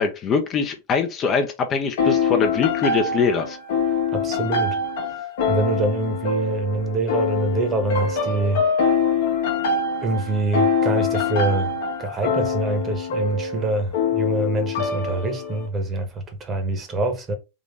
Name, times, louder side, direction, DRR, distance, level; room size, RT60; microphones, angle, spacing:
voice 1, 0.0-3.6, left 5 dB, 30° left, 0.7 m, -23 dB
sound 1, 2.0-15.7, left 4 dB, 55° left, 1.1 m, -24 dB
voice 2, 4.1-4.8 5.5-8.6 10.0-17.3, right 2 dB, 25° right, 1.2 m, -25 dB
3.7 x 3.0 x 4.1 m
figure-of-eight pair, 90°, 0 cm